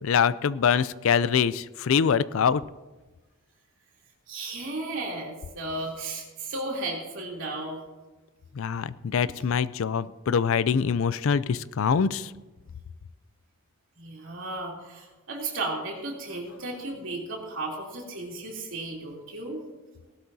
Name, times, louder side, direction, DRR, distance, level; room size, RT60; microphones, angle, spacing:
voice 1, 0.0-2.6 8.6-12.3, left 6 dB, 65° left, 17 dB, 0.4 m, -24 dB
voice 2, 4.3-7.8 9.2-9.4 14.0-19.6, right 2 dB, 60° right, -2 dB, 3.1 m, -34 dB
18.0 x 12.0 x 2.7 m, 1.2 s
head